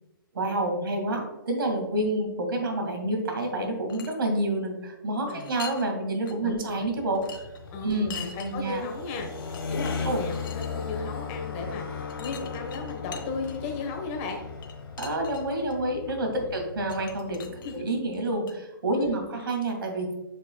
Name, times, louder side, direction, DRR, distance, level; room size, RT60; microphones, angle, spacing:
voice 1, 0.3-7.5 7.8-8.8 10.0-10.3 15.0-20.1, right 1 dB, 75° right, 3 dB, 2.0 m, -28 dB
sound 1, 3.6-4.2 5.3-5.9 6.3-6.4 7.2-8.5 9.2-9.3 9.5-10.7 12.1-13.8 14.6-15.7 16.9-18.5, left 7 dB, 65° left, 1.0 m, -43 dB
voice 2, 6.4-6.9 7.7-14.5 16.3-16.6 17.4-17.8 19.0-19.5, left 4 dB, 30° left, 2 dB, 1.3 m, -36 dB
sound 2, 6.6-18.2, left 5 dB, 90° left, 1.2 m, -37 dB
7.6 x 5.4 x 2.3 m, 1.0 s
hypercardioid pair, 150°, 12 cm